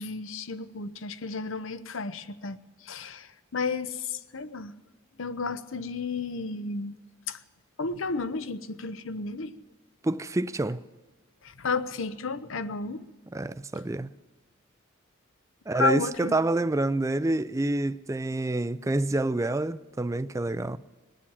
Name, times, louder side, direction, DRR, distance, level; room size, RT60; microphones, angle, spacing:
voice 1, 0.0-4.7 5.2-7.0 7.3-7.4 7.8-9.5 11.4-13.0 15.7-16.4, left 4 dB, 65° left, 0.8 m, -32 dB
voice 2, 10.0-10.8 13.3-14.1 15.7-20.8, right 2 dB, 15° right, 0.4 m, -27 dB
21.0 x 7.5 x 8.6 m
head